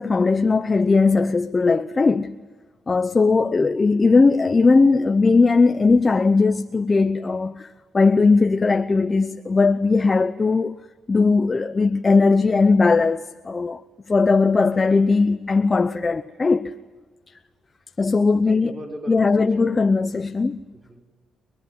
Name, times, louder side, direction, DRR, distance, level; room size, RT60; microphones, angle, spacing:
voice 1, 0.0-2.3 2.9-10.7 11.1-13.8 14.1-16.7 18.0-18.7 19.1-20.6, left 4 dB, 30° left, 0.7 m, -18 dB
voice 2, 3.2-3.5 17.9-18.0 18.3-19.8 20.7-21.0, right 1 dB, 20° right, 5.5 m, -38 dB
25.5 x 21.5 x 9.4 m
cardioid pair, 90°, 0 cm